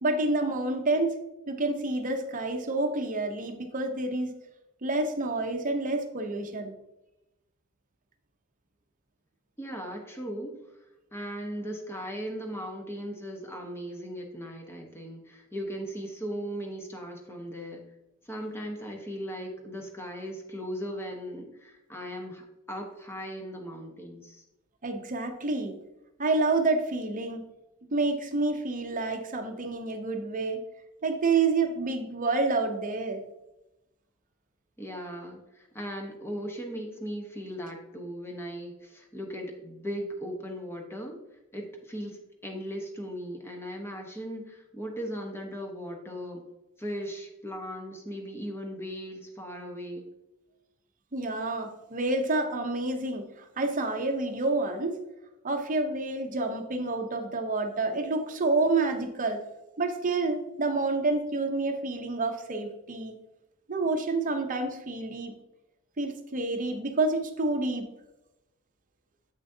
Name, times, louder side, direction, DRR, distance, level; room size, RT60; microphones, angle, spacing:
voice 1, 0.0-1.2 1.5-4.3 4.8-6.7 24.8-25.8 26.2-27.4 27.9-30.6 31.0-33.2 51.1-55.0 55.4-59.4 59.8-63.1 63.7-65.3 66.0-67.9, right 3 dB, 40° right, 5 dB, 0.7 m, -28 dB
voice 2, 9.6-10.5 11.1-17.8 18.3-24.4 34.8-41.2 41.5-46.4 46.8-50.0, equal, 10° left, 2 dB, 1.0 m, -38 dB
7.9 x 6.1 x 2.7 m, 0.95 s
head